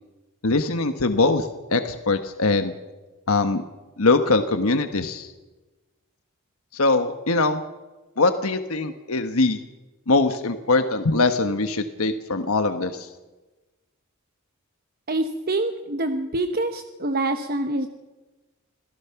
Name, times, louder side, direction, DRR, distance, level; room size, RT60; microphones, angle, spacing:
voice 1, 0.4-2.7 3.3-3.6 4.0-5.3 6.7-7.6 8.2-9.6 10.1-13.1, left 3 dB, 80° left, 8 dB, 1.3 m, -22 dB
voice 2, 15.1-17.9, right 2 dB, 45° right, 6 dB, 1.1 m, -26 dB
27.0 x 17.5 x 5.9 m, 1.2 s
head